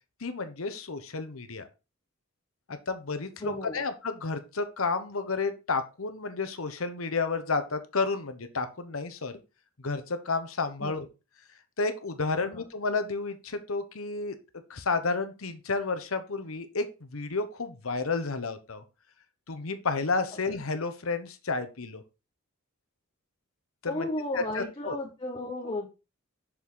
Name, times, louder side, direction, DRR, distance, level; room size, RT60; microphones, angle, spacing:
voice 1, 0.2-1.7 2.7-9.4 9.8-11.1 11.8-14.3 14.7-18.8 19.5-22.0 23.8-24.1 24.3-25.0 25.6-25.7, left 4 dB, 75° left, 9 dB, 1.0 m, -31 dB
voice 2, 3.4-3.8 10.8-11.0 12.4-12.6 23.9-25.9, left 1 dB, 25° left, 0 dB, 1.2 m, -34 dB
6.4 x 6.1 x 3.8 m, 0.29 s
head